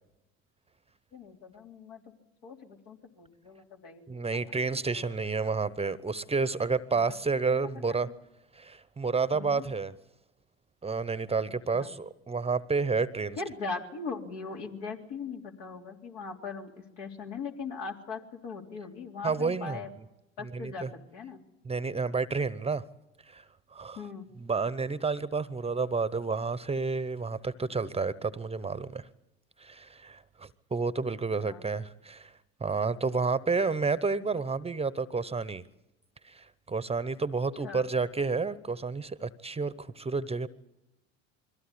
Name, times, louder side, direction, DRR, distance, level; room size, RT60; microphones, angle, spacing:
voice 1, 1.1-2.0 2.4-4.2 4.9-5.1 6.9-7.0 7.5-7.6 8.0-8.1 9.3-9.6 11.7-11.9 13.4-19.9 20.4-21.4 24.0-24.3 31.4-31.6 37.6-37.8, left 4 dB, 75° left, 1 dB, 3.4 m, -40 dB
voice 2, 4.1-8.1 8.5-9.9 10.8-13.4 19.2-19.8 20.5-20.9 21.6-22.8 23.3-23.4 23.7-24.0 24.4-29.1 29.6-32.3 32.6-35.6 36.2-40.5, right 4 dB, 20° right, 18 dB, 0.9 m, -30 dB
22.5 x 15.5 x 10.0 m, 0.92 s
hypercardioid pair, 70°, 34 cm